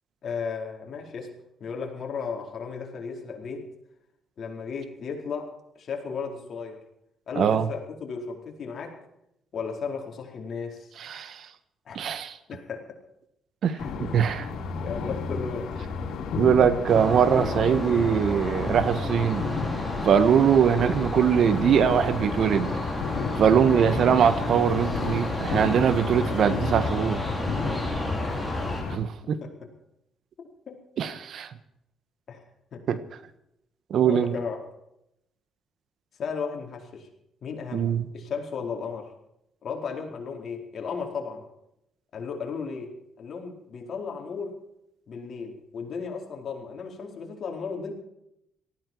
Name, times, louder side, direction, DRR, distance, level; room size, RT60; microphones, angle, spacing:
voice 1, 0.2-1.3 1.6-3.7 4.4-6.8 7.3-9.0 9.5-10.9 11.9-12.1 12.5-13.0 13.7-14.1 14.8-15.7 28.2-29.0 29.4-29.7 30.7-30.8 32.3-32.4 32.7-32.8 34.1-34.6 36.2-37.1 37.4-39.1 39.6-41.4 42.1-42.9 43.2-44.5 45.1-47.9, left 5 dB, 55° left, 2 dB, 4.7 m, -35 dB
voice 2, 7.3-7.7 11.0-11.5 11.9-12.3 13.6-14.5 16.4-19.5 20.0-22.7 23.4-27.2 28.9-29.4 31.0-31.5 32.9-33.0 33.9-34.3 37.7-38.0, right 8 dB, 65° right, 12 dB, 1.5 m, -22 dB
sound 1, 13.8-29.0, left 5 dB, 80° left, 4.1 m, -33 dB
sound 2, 16.9-28.8, left 1 dB, ahead, 5.8 m, -31 dB
18.5 x 15.0 x 4.7 m, 0.80 s
cardioid pair, 90°, 0 cm